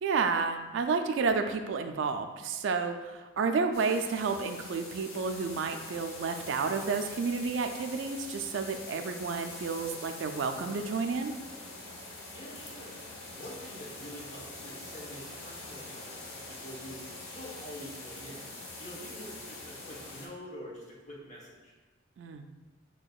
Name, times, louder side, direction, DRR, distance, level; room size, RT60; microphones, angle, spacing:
voice 1, 0.0-11.3 22.2-22.4, right 4 dB, 65° right, 6 dB, 0.3 m, -31 dB
sound 1, 3.7-20.3, left 2 dB, 90° left, 0.9 m, -44 dB
voice 2, 12.3-13.0 13.3-21.8, equal, 35° left, -4 dB, 1.0 m, -46 dB
7.0 x 2.8 x 2.3 m, 1.2 s
head